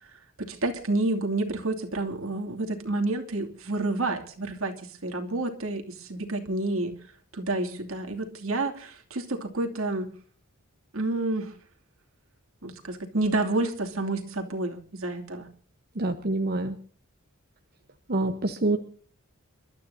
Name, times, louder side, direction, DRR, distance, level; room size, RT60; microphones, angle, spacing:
voice 1, 0.4-6.9 7.3-10.1 10.9-11.5 12.6-15.5, right 2 dB, 70° right, 3 dB, 2.7 m, -29 dB
voice 2, 16.0-16.8 18.1-18.8, right 2 dB, 45° right, 6 dB, 1.0 m, -26 dB
29.0 x 12.5 x 2.7 m, 0.43 s
head